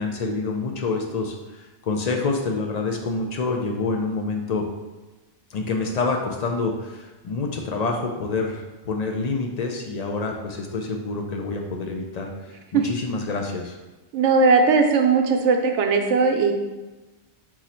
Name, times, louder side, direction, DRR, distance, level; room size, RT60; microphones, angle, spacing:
voice 1, 0.0-4.7 5.5-13.8, left 3 dB, 55° left, 2 dB, 0.5 m, -27 dB
voice 2, 14.1-16.5, right 4 dB, 85° right, 4 dB, 0.9 m, -18 dB
3.8 x 3.0 x 4.2 m, 1.1 s
omnidirectional pair, 1.2 m